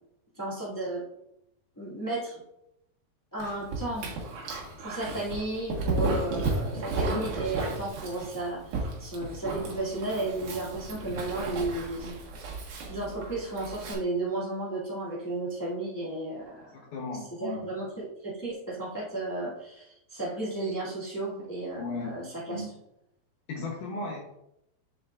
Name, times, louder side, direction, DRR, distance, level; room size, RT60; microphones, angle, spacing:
voice 1, 0.3-1.0 1.7-2.4 3.3-4.1 4.8-12.2 12.9-16.8 17.4-22.7 23.6-23.7 24.0-24.1, right 2 dB, 15° left, -8 dB, 0.5 m, -34 dB
Dog, 3.4-13.9, right 2 dB, 60° right, 2.6 m, -34 dB
voice 2, 16.7-17.7 21.8-22.2 22.5-22.7 23.5-24.4, left 3 dB, 70° left, -1 dB, 2.1 m, -36 dB
7.7 x 7.0 x 2.4 m, 0.82 s
omnidirectional pair, 4.4 m